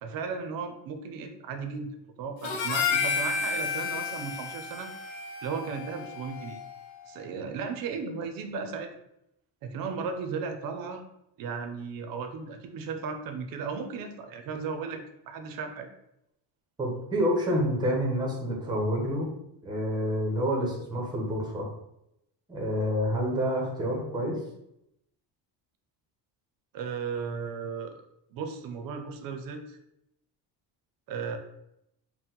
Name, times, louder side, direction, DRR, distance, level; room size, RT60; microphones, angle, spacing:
voice 1, 0.0-4.9 5.4-6.6 7.1-8.9 9.6-11.0 11.4-15.9 26.7-28.0 28.3-29.8 31.1-31.4, right 5 dB, 50° right, 6 dB, 0.5 m, -35 dB
Harmonica, 2.4-6.9, left 5 dB, 80° left, 0.7 m, -31 dB
voice 2, 16.8-19.3 19.6-21.7 22.5-24.4, equal, 10° right, -1 dB, 0.6 m, -28 dB
4.3 x 2.1 x 3.8 m, 0.82 s
cardioid pair, 180°, 44 cm